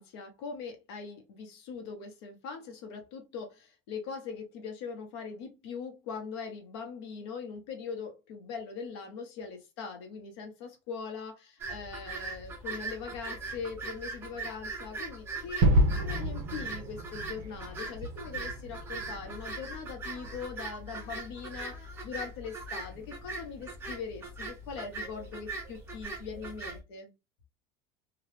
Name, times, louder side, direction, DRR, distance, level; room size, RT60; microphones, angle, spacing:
voice 1, 0.0-27.1, left 5 dB, 75° left, 1.0 m, -41 dB
sound 1, 11.6-26.8, right 3 dB, 15° right, 0.7 m, -41 dB
Gunshot gunfire / Fireworks / Boom, 15.6-20.4, right 1 dB, 55° right, 0.8 m, -30 dB
2.9 x 2.3 x 3.3 m
cardioid pair, 170°, 14 cm